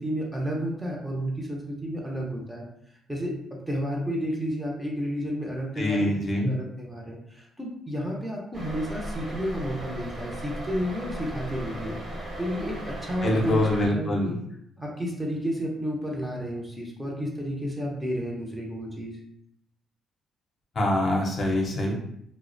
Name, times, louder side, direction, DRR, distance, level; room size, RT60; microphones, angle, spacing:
voice 1, 0.0-2.6 3.1-14.4 14.8-19.2, equal, 10° right, -2 dB, 0.6 m, -31 dB
voice 2, 5.8-6.5 13.2-14.3 20.8-21.9, left 1 dB, 45° left, -1 dB, 0.6 m, -24 dB
sound 1, 8.5-13.9, right 1 dB, 45° right, 1.1 m, -36 dB
2.4 x 2.0 x 2.5 m, 0.72 s
cardioid pair, 90°, 0 cm